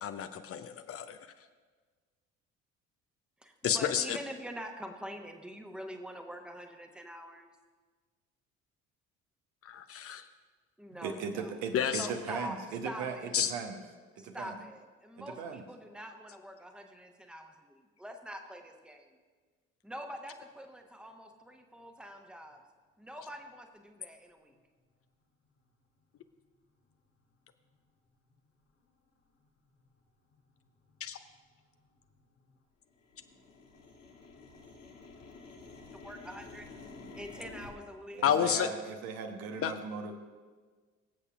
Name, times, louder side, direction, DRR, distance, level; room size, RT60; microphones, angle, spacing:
voice 1, 0.0-1.2 3.6-4.2 9.6-10.2 11.7-12.1 13.3-13.5 31.0-31.2 38.2-38.7 39.6-39.7, left 8 dB, 35° left, 9 dB, 0.6 m, -30 dB
voice 2, 3.4-7.5 10.8-11.6 12.0-12.6 12.8-13.3 14.1-19.1 19.8-22.6 23.0-24.6 36.0-36.7 37.1-38.4, equal, ahead, 5 dB, 1.1 m, -45 dB
voice 3, 10.9-13.8 14.2-14.6 15.2-15.6 38.1-40.1, right 5 dB, 60° right, 5 dB, 1.0 m, -38 dB
sound 1, 26.9-27.0 27.6-27.7 28.3-28.6 29.1-29.2 29.4-30.0 30.3-32.6 32.9-37.7, left 3 dB, 75° left, 1.4 m, -51 dB
24.5 x 8.1 x 2.4 m, 1.5 s
figure-of-eight pair, 50°, 38 cm